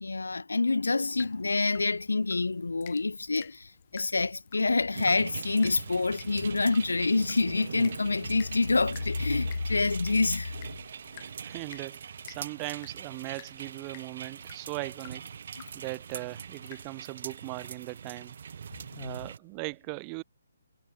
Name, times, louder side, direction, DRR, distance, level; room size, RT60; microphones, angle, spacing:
voice 1, 0.0-10.6 18.9-19.2, left 3 dB, 75° left, 0.5 m, -27 dB
sound 1, 1.2-17.1, left 16 dB, 30° left, 1.3 m, -54 dB
sound 2, 4.9-19.4, right 7 dB, 55° right, 0.6 m, -43 dB
voice 2, 11.2-12.0 12.3-15.2 15.7-18.3 18.9-20.2, right 40 dB or more, 25° right, 1.1 m, -39 dB
figure-of-eight pair, 140°, 0 cm